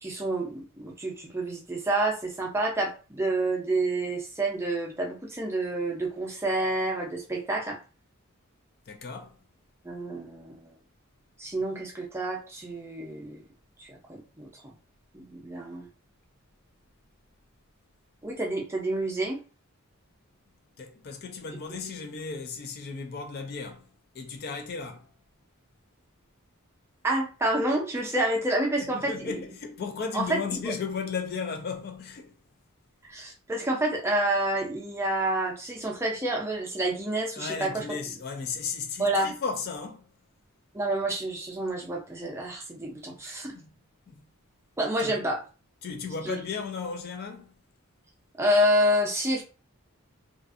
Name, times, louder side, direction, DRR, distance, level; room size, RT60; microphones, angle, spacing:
voice 1, 0.0-7.8 9.8-10.7 11.4-13.4 13.8-14.7 15.1-15.9 18.2-19.4 27.0-29.4 30.1-30.7 33.0-37.8 39.0-39.3 40.7-43.6 44.8-45.4 46.2-46.4 48.4-49.4, right 1 dB, 10° right, 0.5 m, -28 dB
voice 2, 8.9-9.4 20.8-23.9 24.1-25.1 28.8-32.3 37.4-40.1 43.6-43.7 44.1-44.2 45.0-45.2 45.8-47.5, left 5 dB, 45° left, 0.3 m, -35 dB
2.5 x 2.4 x 2.4 m
head